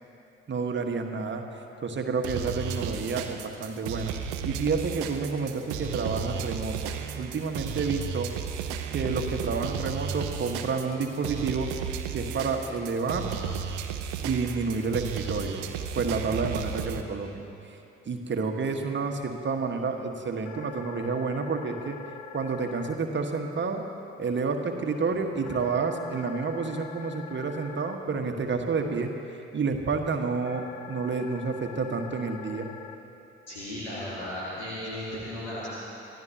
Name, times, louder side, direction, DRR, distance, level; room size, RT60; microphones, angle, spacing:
voice 1, 0.5-1.4 1.8-4.1 4.4-8.3 8.9-11.7 12.1-13.3 14.2-15.6 15.9-17.8 18.0-22.0 22.3-23.8 24.2-32.7, right 4 dB, 35° right, 4 dB, 1.5 m, -29 dB
sound 1, 2.2-17.0, right 7 dB, 60° right, 0.9 m, -34 dB
sound 2, 20.4-22.9 25.4-27.9 30.4-32.9, left 8 dB, 55° left, 1.0 m, -44 dB
voice 2, 33.5-35.7, left 1 dB, 80° left, -9 dB, 2.1 m, -35 dB
25.5 x 15.5 x 2.9 m, 2.8 s
figure-of-eight pair, 45°, 33 cm